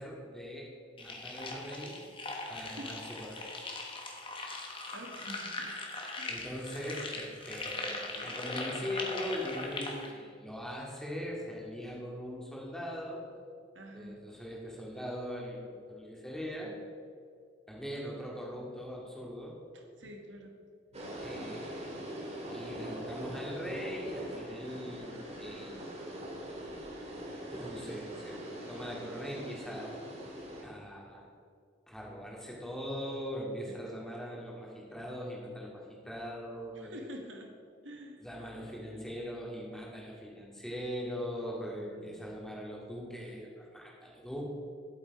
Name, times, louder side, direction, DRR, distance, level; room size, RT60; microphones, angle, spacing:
voice 1, 0.0-2.0 2.5-3.4 6.3-13.3 13.9-16.8 17.7-19.6 21.2-22.0 22.5-25.9 27.5-29.9 30.6-31.2 31.9-37.0 38.2-44.4, equal, 5° left, -3 dB, 2.2 m, -41 dB
sound 1, 1.0-10.1, left 2 dB, 25° left, 1.3 m, -40 dB
voice 2, 2.6-3.0 4.9-5.8 6.2-6.4 13.7-14.2 19.7-20.5 20.9-21.0 36.7-37.5 37.8-38.2 41.8-42.4, equal, 70° right, 3 dB, 1.6 m, -47 dB
sound 2, 20.9-30.6, right 1 dB, 35° right, 2.0 m, -42 dB
11.5 x 8.1 x 4.8 m, 2.2 s
head